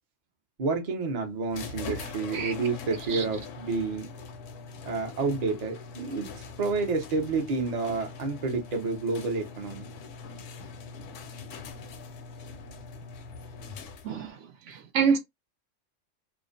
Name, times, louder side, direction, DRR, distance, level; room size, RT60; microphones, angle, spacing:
voice 1, 0.6-4.1 4.8-6.3 6.6-9.9, right 4 dB, 45° right, 0.6 m, -29 dB
sound 1, 1.5-14.3, left 4 dB, 75° left, 0.9 m, -42 dB
voice 2, 14.7-15.2, right 6 dB, 70° right, 0.9 m, -26 dB
2.5 x 2.0 x 2.5 m
omnidirectional pair, 1.3 m